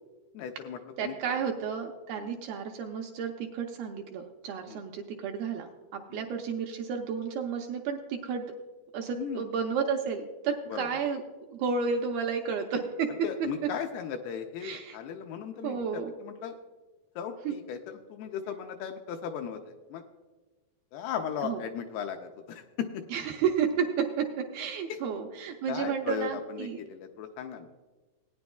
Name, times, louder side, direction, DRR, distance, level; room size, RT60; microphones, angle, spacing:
voice 1, 0.3-1.4 2.2-2.4 4.7-4.8 6.1-6.3 9.2-9.5 10.7-10.9 13.2-15.8 16.2-16.6 17.2-20.0 20.9-23.0 24.9-25.0 25.7-27.7, left 8 dB, 80° left, 5 dB, 2.3 m, -37 dB
voice 2, 1.0-8.5 8.9-11.2 11.5-13.1 14.6-15.0 15.6-16.1 17.5-17.6 21.4-21.6 23.1-24.3 24.5-26.8, right 6 dB, 85° right, 2 dB, 2.3 m, -32 dB
18.0 x 9.8 x 2.3 m, 1.3 s
omnidirectional pair, 4.8 m